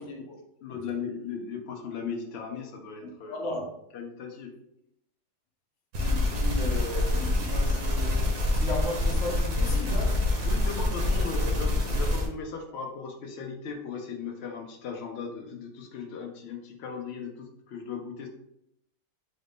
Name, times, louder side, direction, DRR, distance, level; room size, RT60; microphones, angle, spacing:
voice 1, 0.0-0.4 0.8-0.9 2.5-2.6 3.0-3.7 6.0-10.4 11.2-11.5, left 2 dB, 55° left, 0.9 m, -36 dB
voice 2, 0.6-3.4 3.9-4.5 10.4-18.3, left 5 dB, 80° left, 0.5 m, -37 dB
sound 1, 5.9-12.3, left 1 dB, 70° right, 1.4 m, -26 dB
4.0 x 2.6 x 3.4 m
omnidirectional pair, 1.8 m